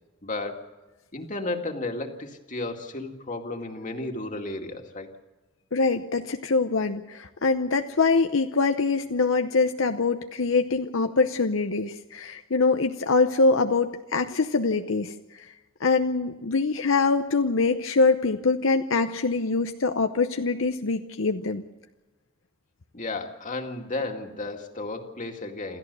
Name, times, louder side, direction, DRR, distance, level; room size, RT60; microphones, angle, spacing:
voice 1, 0.2-0.7 1.1-5.2 22.9-25.8, left 2 dB, 40° left, 3 dB, 2.2 m, -33 dB
voice 2, 5.7-15.1 15.8-21.6, left 4 dB, 75° left, 7 dB, 0.8 m, -24 dB
27.5 x 14.0 x 6.9 m, 1.1 s
head